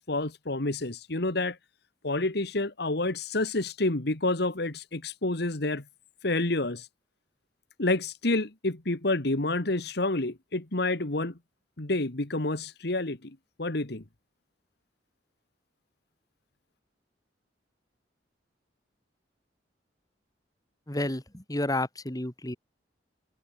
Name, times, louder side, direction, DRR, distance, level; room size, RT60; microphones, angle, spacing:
voice 1, 0.0-1.6 2.0-5.8 6.2-6.9 7.8-11.3 11.8-14.0, left 2 dB, 65° left, 1.8 m, -29 dB
voice 2, 20.9-22.6, left 1 dB, 20° left, 2.3 m, -31 dB
head